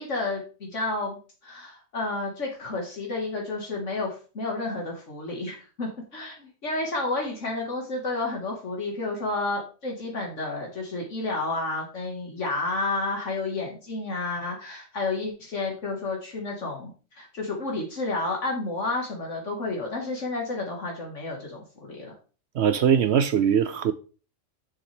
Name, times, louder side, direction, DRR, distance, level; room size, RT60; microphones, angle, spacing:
voice 1, 0.0-22.2, left 2 dB, 65° left, 2.0 m, -31 dB
voice 2, 22.6-23.9, right 8 dB, 65° right, 0.8 m, -21 dB
7.1 x 7.1 x 3.3 m
omnidirectional pair, 1.4 m